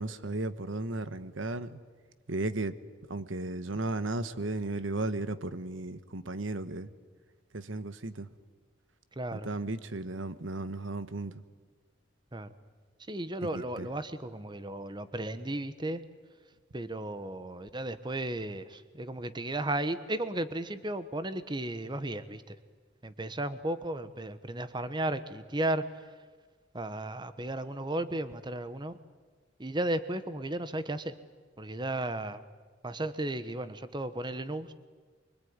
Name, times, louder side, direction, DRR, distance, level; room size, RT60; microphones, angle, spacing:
voice 1, 0.0-1.8 2.3-2.8 3.1-6.9 7.5-8.3 9.3-11.4 13.4-13.9, right 2 dB, 85° right, 13 dB, 1.3 m, -35 dB
voice 2, 9.2-9.5 12.3-12.5 13.1-16.0 16.7-22.6 23.0-26.1 26.7-28.9 29.6-31.1 31.6-32.4 32.8-34.7, right 1 dB, 25° right, 12 dB, 1.1 m, -34 dB
25.0 x 24.0 x 9.6 m, 1.4 s
head